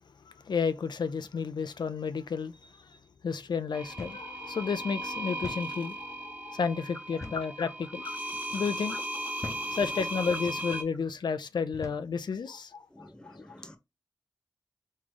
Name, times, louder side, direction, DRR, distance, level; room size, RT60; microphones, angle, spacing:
voice 1, 0.3-3.0 3.2-8.1 8.5-13.5, left 5 dB, 90° left, 0.4 m, -32 dB
sound 1, 3.7-10.8, right 1 dB, 25° right, 1.1 m, -37 dB
sound 2, 4.0-4.3 4.6-4.7 5.4-5.7 7.2-7.6 8.2-8.4 9.4-9.8 10.5-10.7 11.7-12.1, left 3 dB, 45° left, 0.7 m, -42 dB
voice 2, 9.4-9.8 12.9-13.8, left 1 dB, 10° left, 1.0 m, -49 dB
3.7 x 3.2 x 3.7 m
wide cardioid pair, 65°, 7 cm